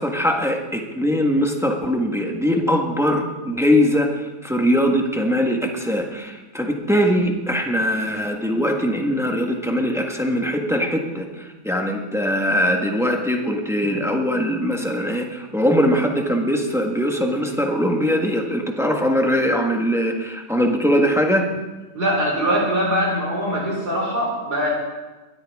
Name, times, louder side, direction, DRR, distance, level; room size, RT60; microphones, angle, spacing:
voice 1, 0.0-21.5, equal, ahead, 2 dB, 1.3 m, -21 dB
voice 2, 21.9-24.7, equal, 70° right, -3 dB, 5.1 m, -22 dB
21.5 x 13.0 x 3.6 m, 1.2 s
omnidirectional pair, 1.8 m